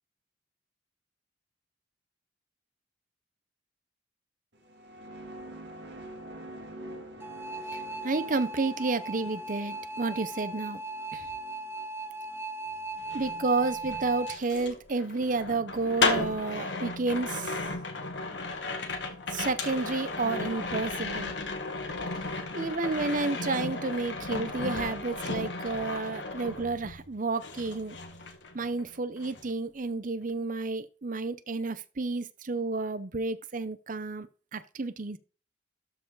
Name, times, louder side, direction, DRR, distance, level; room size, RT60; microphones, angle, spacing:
sound 1, 4.5-13.2, right 1 dB, 65° right, 2.1 m, -47 dB
sound 2, 7.2-14.4, right 2 dB, 15° right, 0.7 m, -38 dB
voice 1, 7.7-10.8 11.1-11.3 13.1-17.6 19.3-21.3 22.5-28.0 28.5-35.2, right 3 dB, 45° right, 0.7 m, -31 dB
sound 3, 13.0-27.1 27.4-28.9 29.2-29.5, left 3 dB, 65° left, 1.5 m, -34 dB
12.5 x 4.6 x 4.0 m
head